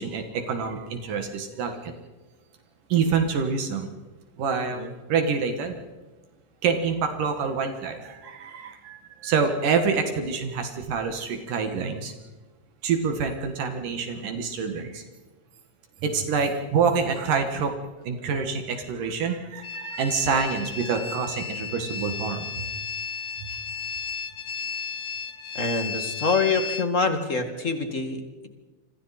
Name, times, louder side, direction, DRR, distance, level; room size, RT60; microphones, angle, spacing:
voice 1, 0.0-1.9 2.9-3.9 4.4-4.8 5.1-5.8 6.6-12.1 12.8-15.0 16.0-17.8 18.0-22.7 23.4-23.5, right 5 dB, 75° right, 5 dB, 3.2 m, -26 dB
sound 1, 19.6-26.9, left 6 dB, 55° left, 1.4 m, -34 dB
voice 2, 25.5-28.5, left 4 dB, 30° left, 6 dB, 1.8 m, -26 dB
28.5 x 25.5 x 4.3 m, 1.2 s
omnidirectional pair, 3.8 m